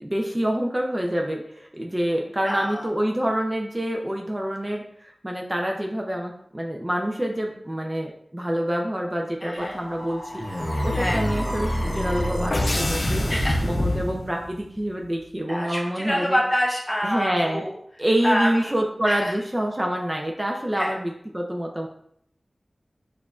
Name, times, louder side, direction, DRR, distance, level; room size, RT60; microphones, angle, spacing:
voice 1, 0.0-13.3 13.6-16.4 17.0-17.6 18.0-21.9, equal, 25° right, 1 dB, 0.5 m, -27 dB
voice 2, 2.4-2.8 9.4-9.8 10.9-11.2 13.3-13.6 15.5-17.7 18.2-18.7 19.0-19.3 20.8-20.9, equal, 20° left, -1 dB, 0.9 m, -26 dB
sound 1, 9.6-14.6, left 1 dB, 50° left, 0.6 m, -26 dB
4.7 x 2.4 x 2.4 m, 0.67 s
cardioid pair, 40°, 0 cm